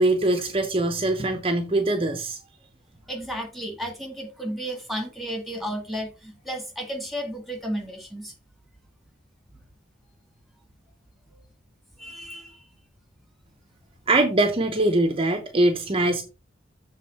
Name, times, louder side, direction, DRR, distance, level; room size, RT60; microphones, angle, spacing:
voice 1, 0.0-2.4 14.1-16.2, right 2 dB, 30° right, 0.8 m, -22 dB
voice 2, 3.1-8.3 9.5-9.6 11.3-11.4 12.0-12.7, equal, ahead, 2.0 m, -33 dB
7.4 x 3.7 x 5.3 m
head